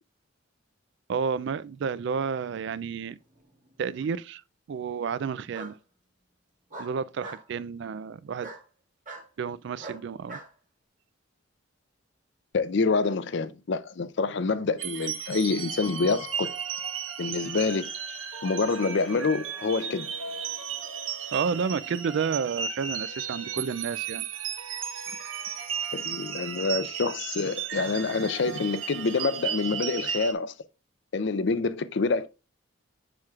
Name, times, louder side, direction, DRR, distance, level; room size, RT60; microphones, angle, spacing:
voice 1, 1.1-3.2 3.8-4.4 4.7-5.8 6.8-8.5 9.4-10.4 21.3-24.3, right 6 dB, 60° right, 0.3 m, -31 dB
Bark, 3.4-4.0 5.5-5.7 6.7-7.4 8.4-8.6 9.0-9.3 9.8-10.5, right 2 dB, 40° right, 1.5 m, -41 dB
voice 2, 12.5-16.5 17.2-17.9 18.4-20.1 25.9-30.5 31.1-32.3, left 4 dB, 60° left, 0.5 m, -27 dB
sound 1, 14.8-30.3, right 8 dB, 80° right, 1.1 m, -35 dB
7.6 x 5.9 x 2.4 m
head